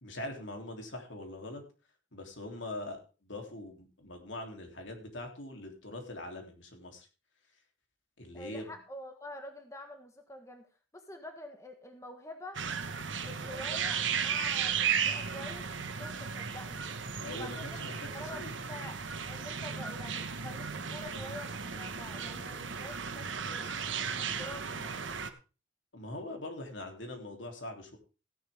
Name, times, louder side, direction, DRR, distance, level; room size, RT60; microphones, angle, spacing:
voice 1, 0.0-1.6 2.1-7.1 8.2-8.8 17.2-17.9 18.2-18.5 25.9-28.0, left 1 dB, 75° left, 3 dB, 3.1 m, -42 dB
voice 2, 8.3-10.6 10.9-12.6 13.2-16.9 17.4-17.8 18.1-19.0 19.3-23.8 24.2-25.1, left 1 dB, 15° left, 5 dB, 1.4 m, -47 dB
sound 1, 12.5-25.3, right 6 dB, 75° right, 1.3 m, -35 dB
15.5 x 10.5 x 3.5 m, 0.33 s
head